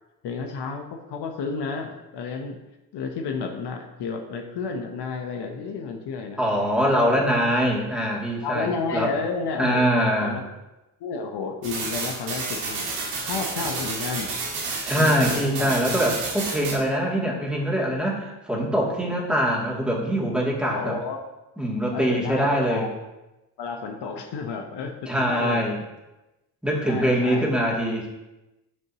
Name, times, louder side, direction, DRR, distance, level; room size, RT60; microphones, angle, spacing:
voice 1, 0.2-2.6 2.9-6.4 6.8-7.3 8.4-10.4 11.0-12.9 13.3-14.3 14.9-15.7 20.6-21.2 21.9-22.9 23.6-25.6 26.9-27.5, left 4 dB, 55° left, 4 dB, 1.1 m, -31 dB
voice 2, 6.4-9.1 9.6-10.4 14.8-20.9 21.6-22.9 25.1-25.8 26.6-28.1, equal, ahead, -3 dB, 2.5 m, -23 dB
sound 1, 11.6-16.7, right 3 dB, 80° right, 1.8 m, -30 dB
11.0 x 5.3 x 3.0 m, 0.99 s
hypercardioid pair, 50°, 48 cm